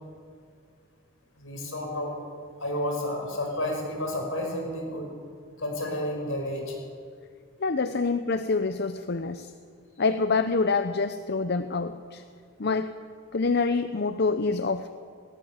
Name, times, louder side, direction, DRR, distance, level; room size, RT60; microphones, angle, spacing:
voice 1, 1.4-2.2 2.6-5.1 5.6-6.8, left 1 dB, 75° left, 2 dB, 5.5 m, -31 dB
voice 2, 7.6-9.5 10.0-12.2 12.6-12.9 13.3-14.9, left 4 dB, 50° left, 10 dB, 0.7 m, -26 dB
18.5 x 16.0 x 9.5 m, 2.2 s
head